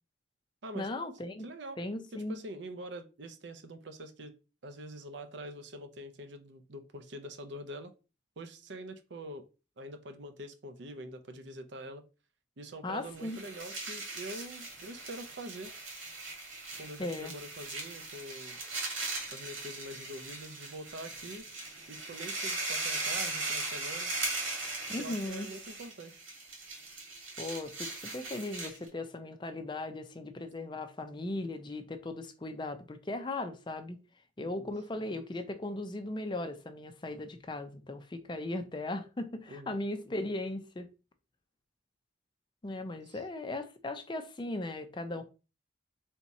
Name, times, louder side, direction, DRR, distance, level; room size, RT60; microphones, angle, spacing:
voice 1, 0.7-1.5 1.8-2.4 12.8-13.4 17.0-17.3 24.9-25.5 27.4-34.0 34.4-40.9 42.6-45.2, left 2 dB, 25° left, 0.4 m, -37 dB
voice 2, 1.4-1.8 2.1-4.3 4.6-7.9 8.4-9.4 9.8-12.0 12.6-15.7 16.5-18.6 19.3-21.5 21.9-24.1 25.0-26.3 34.4-34.7 39.5-39.8 43.0-43.2, right 1 dB, 60° right, 0.6 m, -45 dB
sound 1, 13.1-28.9, right 3 dB, 75° right, 1.6 m, -39 dB
3.5 x 2.8 x 4.0 m
head